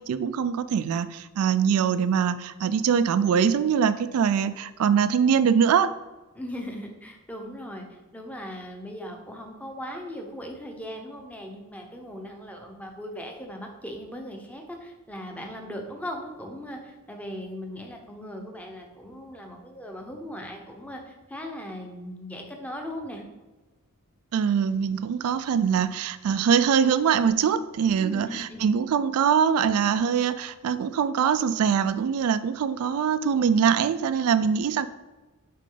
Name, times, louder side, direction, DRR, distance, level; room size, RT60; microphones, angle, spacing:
voice 1, 0.1-5.9 24.3-34.9, right 7 dB, 90° right, 14 dB, 0.3 m, -23 dB
voice 2, 6.3-23.2 28.0-28.7, equal, 5° left, 2 dB, 0.8 m, -38 dB
8.3 x 3.7 x 3.8 m, 1.2 s
head